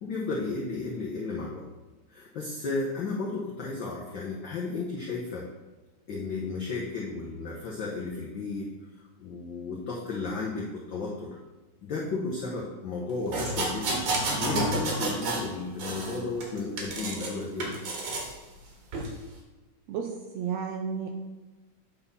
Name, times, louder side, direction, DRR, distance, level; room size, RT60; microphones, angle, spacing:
voice 1, 0.0-1.6 2.1-5.5 6.1-8.7 8.9-11.4 11.8-14.0 14.4-18.0, left 3 dB, 70° left, -4 dB, 1.1 m, -33 dB
sound 1, 13.3-15.5 15.8-17.3 17.6-18.3 18.9-19.1, right 2 dB, 60° right, 2.4 m, -30 dB
voice 2, 19.9-21.1, right 6 dB, 75° right, 3 dB, 1.6 m, -32 dB
8.6 x 4.2 x 5.4 m, 1.2 s
omnidirectional pair, 3.5 m